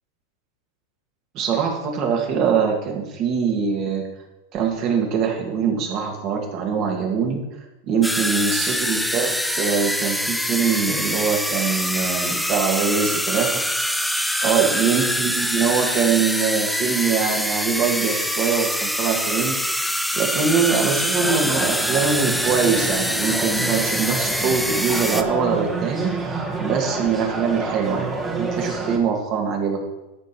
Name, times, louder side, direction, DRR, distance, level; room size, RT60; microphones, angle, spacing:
voice 1, 1.3-4.1 4.5-7.4 7.9-13.6 14.4-19.6 20.1-26.2 26.6-28.1 28.4-29.8, right 6 dB, 40° right, 1 dB, 2.1 m, -23 dB
sound 1, 8.0-25.2, equal, ahead, 0.5 m, -24 dB
sound 2, 21.2-29.0, right 3 dB, 20° right, 1.6 m, -29 dB
13.0 x 5.2 x 4.6 m, 0.99 s
supercardioid pair, 140°, 0 cm